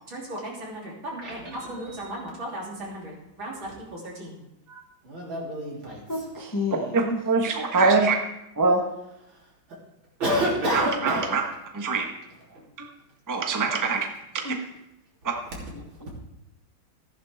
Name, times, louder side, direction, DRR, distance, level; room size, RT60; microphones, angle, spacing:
voice 1, 0.1-3.1 3.4-4.4 4.7-6.0 10.2-11.3, equal, 75° right, -4 dB, 4.0 m, -31 dB
voice 2, 6.1-7.2 14.4-14.6 15.7-16.1, left 3 dB, 20° left, 2 dB, 0.6 m, -31 dB
voice 3, 6.9-8.2 8.6-8.8 10.7-11.4 11.7-12.1 13.3-14.1, right 4 dB, 15° right, 2 dB, 0.9 m, -23 dB
14.5 x 11.0 x 3.5 m, 0.87 s
omnidirectional pair, 2.2 m